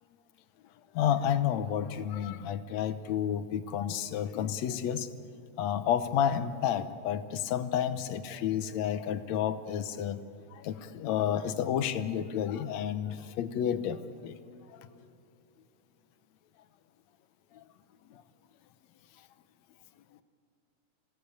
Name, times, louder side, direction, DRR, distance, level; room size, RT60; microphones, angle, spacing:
voice 1, 1.0-5.1 5.6-10.2 10.6-14.3, left 9 dB, 75° left, 11 dB, 2.1 m, -30 dB
26.5 x 17.5 x 8.4 m, 2.8 s
omnidirectional pair, 3.4 m